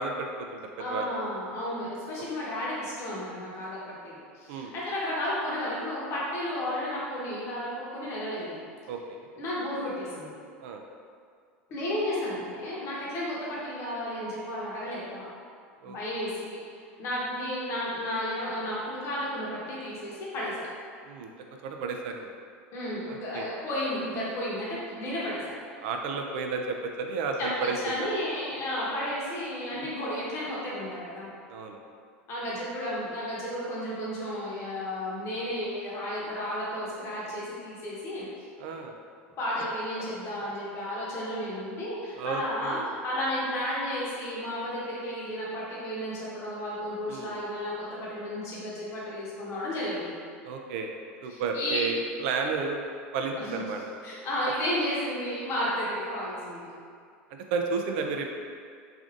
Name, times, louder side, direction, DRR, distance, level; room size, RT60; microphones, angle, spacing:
voice 1, 0.0-1.1 4.5-4.7 8.9-9.3 10.6-10.8 15.8-16.0 21.0-21.3 21.6-22.3 23.1-23.5 25.8-28.1 29.7-29.9 31.5-31.8 38.6-38.9 42.2-42.9 47.1-47.3 50.4-50.9 51.2-52.8 53.1-53.8 57.5-58.3, right 4 dB, 70° right, 3 dB, 0.4 m, -32 dB
voice 2, 0.8-8.6 9.4-10.3 11.7-15.2 15.8-16.6 17.0-20.7 22.7-25.5 27.4-31.3 32.3-38.3 39.4-50.1 51.3-51.8 53.4-53.6 54.0-56.7, left 1 dB, 45° left, -6 dB, 0.9 m, -33 dB
3.3 x 2.5 x 2.4 m, 2.2 s
supercardioid pair, 100°, 6 cm